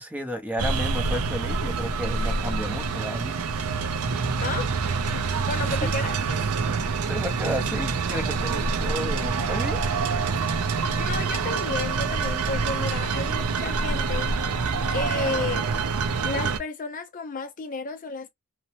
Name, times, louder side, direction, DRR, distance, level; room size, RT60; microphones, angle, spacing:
voice 1, 0.0-3.4 5.8-6.0 7.1-9.8, equal, 5° right, 0.6 m, -32 dB
sound 1, 0.6-16.6, right 4 dB, 90° right, 0.5 m, -26 dB
voice 2, 4.4-4.8 5.4-6.5 10.9-14.3 14.9-15.7 16.2-18.3, left 3 dB, 40° left, 0.4 m, -32 dB
2.9 x 2.0 x 2.7 m
head